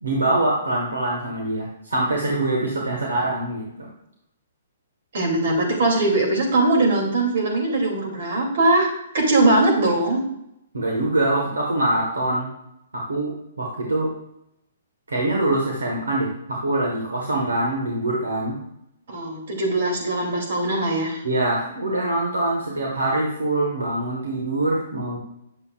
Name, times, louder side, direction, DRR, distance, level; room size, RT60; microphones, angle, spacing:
voice 1, 0.0-3.9 10.7-12.5 12.9-14.1 15.1-18.6 21.2-25.2, right 2 dB, 90° right, -1 dB, 1.5 m, -24 dB
voice 2, 5.1-8.9 9.1-10.2 19.1-21.2, right 2 dB, 65° right, 1 dB, 2.7 m, -21 dB
9.4 x 7.0 x 2.4 m, 0.80 s
hypercardioid pair, 135°, 0 cm